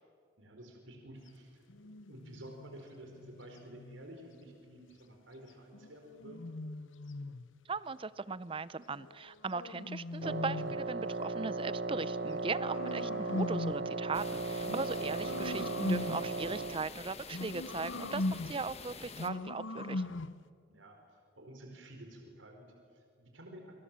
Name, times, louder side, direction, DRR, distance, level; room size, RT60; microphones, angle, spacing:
voice 1, 0.4-6.5 15.3-15.4 20.7-21.0 21.3-23.7, right 1 dB, 85° right, 2 dB, 4.4 m, -52 dB
sound 1, 1.7-4.1 5.7-7.5 8.9-10.9 11.9-13.9 14.6-16.4 17.3-18.7 19.1-20.4, left 2 dB, 85° left, 0.9 m, -40 dB
voice 2, 7.7-20.0, right 4 dB, 30° right, 17 dB, 0.6 m, -38 dB
Wind instrument woodwind instrument, 10.2-16.9, right 3 dB, 60° right, 0.9 m, -37 dB
sound 2, 14.1-19.3, left 4 dB, 35° left, 1.4 m, -48 dB
27.0 x 26.0 x 7.5 m, 2.3 s
head